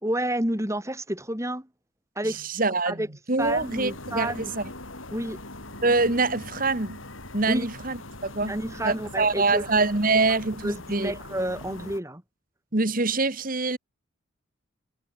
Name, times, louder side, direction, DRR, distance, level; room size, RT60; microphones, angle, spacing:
voice 1, 0.0-1.7 2.1-2.5 2.8-3.1 3.4-4.5 5.1-5.4 7.5-7.7 8.4-9.6 10.3-10.4 10.6-12.2, right 1 dB, 15° right, 3.3 m, -30 dB
voice 2, 2.5-3.0 3.3-4.6 5.8-7.0 7.3-11.1 12.7-13.8, right 3 dB, 40° right, 1.7 m, -25 dB
sound 1, 3.4-12.0, left 2 dB, 70° left, 6.3 m, -41 dB
head